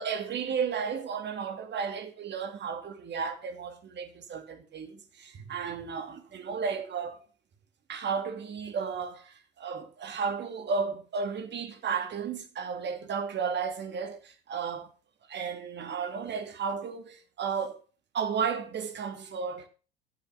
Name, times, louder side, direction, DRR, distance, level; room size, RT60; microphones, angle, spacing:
voice 1, 0.0-7.3 7.9-14.9 15.3-17.8 18.1-19.7, right 6 dB, 35° right, 2.4 m, -33 dB
11.5 x 7.0 x 5.8 m
hypercardioid pair, 85°, 30 cm